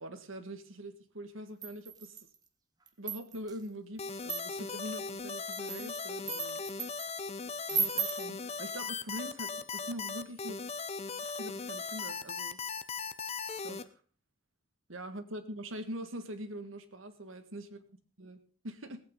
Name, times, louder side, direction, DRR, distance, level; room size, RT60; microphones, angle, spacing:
voice 1, 0.0-2.2 3.0-6.6 7.7-10.6 11.2-12.6 13.6-13.8 14.9-17.8 18.2-18.4 18.6-19.0, right 1 dB, 80° right, 9 dB, 1.8 m, -43 dB
sound 1, 1.6-2.4 2.9-3.6 4.2-4.8 5.4-7.1 7.7-8.3, right 6 dB, 20° right, 1.3 m, -36 dB
sound 2, 4.0-13.8, left 4 dB, 30° left, 0.8 m, -38 dB
17.5 x 8.8 x 5.3 m, 0.40 s
head